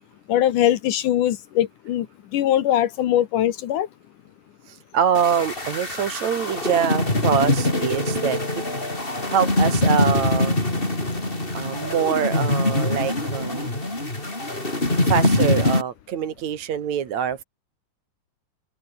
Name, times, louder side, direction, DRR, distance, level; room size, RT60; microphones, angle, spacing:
voice 1, 0.3-2.1 2.3-3.9, left 11 dB, 70° left, 2.6 m, -21 dB
voice 2, 4.7-8.4 9.3-10.6 11.5-13.8 15.0-17.4, right 8 dB, 60° right, 2.9 m, -24 dB
sound 1, 5.1-15.8, left 2 dB, 15° left, 4.6 m, -23 dB
open air
omnidirectional pair, 3.9 m